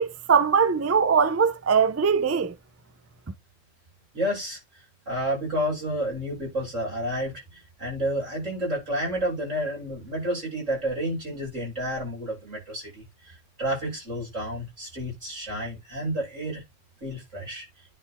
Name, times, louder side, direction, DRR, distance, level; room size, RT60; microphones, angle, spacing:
voice 1, 0.0-2.5, right 6 dB, 25° right, 0.3 m, -21 dB
voice 2, 4.1-4.6 5.1-16.6 17.0-17.7, equal, 90° right, 7.1 m, -30 dB
10.0 x 4.4 x 3.6 m
omnidirectional pair, 1.3 m